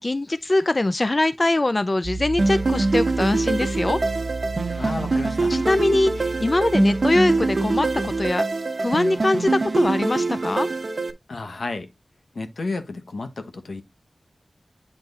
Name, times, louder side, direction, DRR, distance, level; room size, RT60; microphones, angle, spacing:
voice 1, 0.0-4.0 4.7-4.9 5.5-8.4 8.8-10.7, left 2 dB, 35° left, 0.4 m, -22 dB
Piano, 2.0-8.3, right 3 dB, 80° right, 0.7 m, -33 dB
sound 1, 2.4-11.1, right 3 dB, 60° right, 1.0 m, -24 dB
voice 2, 4.7-5.6 11.3-11.9 12.3-13.8, left 3 dB, 80° left, 1.3 m, -32 dB
8.8 x 3.6 x 4.0 m
wide cardioid pair, 90°, 0 cm